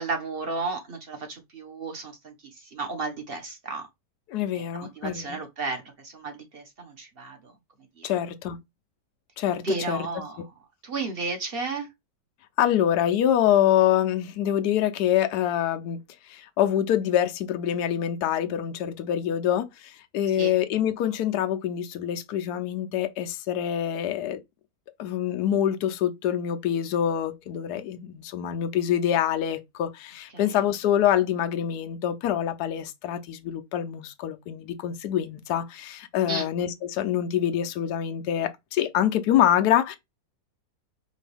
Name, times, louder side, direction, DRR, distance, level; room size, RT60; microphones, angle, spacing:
voice 1, 0.0-2.3 2.7-3.9 4.5-7.5 8.0-8.1 9.6-10.4 10.8-11.9 20.4-20.5 30.3-30.6 36.3-36.5, right 3 dB, 35° right, 1.2 m, -33 dB
voice 2, 4.3-5.4 8.0-8.6 9.4-10.0 12.6-16.0 16.3-24.4 25.0-40.0, left 10 dB, 70° left, 1.2 m, -25 dB
5.3 x 2.7 x 3.4 m
omnidirectional pair, 1.8 m